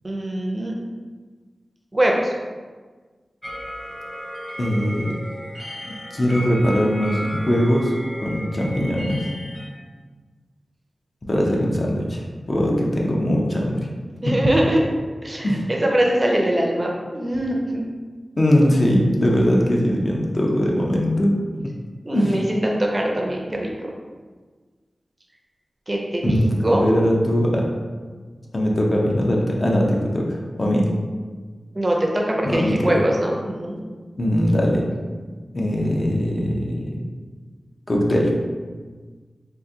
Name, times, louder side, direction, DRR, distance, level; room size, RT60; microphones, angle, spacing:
voice 1, 0.0-0.7 1.9-2.3 11.4-11.6 14.2-14.8 15.2-17.8 22.0-23.9 25.9-26.9 31.7-33.8, right 1 dB, 25° right, -1 dB, 0.5 m, -22 dB
sound 1, 3.4-9.7, equal, 15° left, 1.0 m, -34 dB
voice 2, 4.6-5.1 5.8-7.9 8.2-9.2 11.3-13.8 14.3-14.4 15.4-15.6 18.4-21.3 22.1-22.4 26.2-27.7 28.5-30.8 32.4-33.0 34.2-34.8 35.5-37.0 37.9-38.3, equal, 40° left, -2 dB, 0.6 m, -21 dB
3.7 x 2.5 x 2.7 m, 1.4 s
wide cardioid pair, 80°, 0 cm